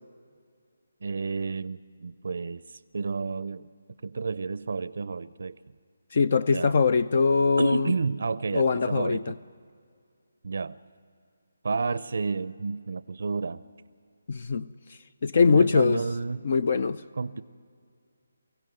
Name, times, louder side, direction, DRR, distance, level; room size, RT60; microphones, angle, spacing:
voice 1, 1.0-3.7 4.0-5.6 6.5-6.8 7.6-9.4 10.4-10.8 11.6-13.6 15.5-16.4 17.2-17.4, right 4 dB, 65° right, 0.5 m, -31 dB
voice 2, 6.1-7.9 8.5-9.2 14.3-16.0 16.4-17.0, left 5 dB, 50° left, 0.4 m, -22 dB
24.0 x 16.0 x 7.8 m
figure-of-eight pair, 160°, 0 cm